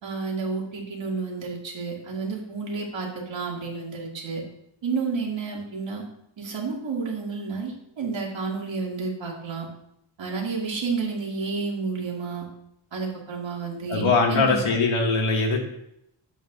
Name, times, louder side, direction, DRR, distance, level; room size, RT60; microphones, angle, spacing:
voice 1, 0.0-4.4 4.8-6.0 6.4-9.7 10.2-12.4 12.9-14.6, right 4 dB, 65° right, -1 dB, 2.4 m, -30 dB
voice 2, 13.9-15.6, left 3 dB, 80° left, 0 dB, 2.0 m, -21 dB
11.0 x 8.2 x 2.5 m, 0.76 s
wide cardioid pair, 110°, 48 cm